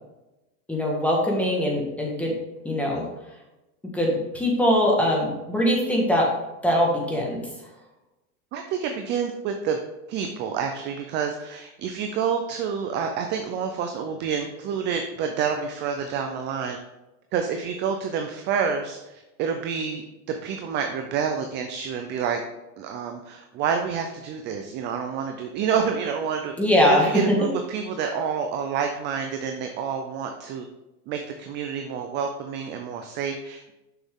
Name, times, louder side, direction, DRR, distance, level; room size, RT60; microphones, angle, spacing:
voice 1, 0.7-2.3 2.6-3.0 3.9-6.3 6.6-7.4 26.6-27.4, left 1 dB, 5° left, -2 dB, 1.5 m, -22 dB
voice 2, 8.5-9.8 10.1-16.8 17.3-20.0 20.4-22.4 22.8-26.6 26.9-30.7 31.1-33.7, right 6 dB, 25° right, 5 dB, 0.4 m, -28 dB
6.6 x 6.4 x 3.7 m, 0.99 s
supercardioid pair, 145°, 44 cm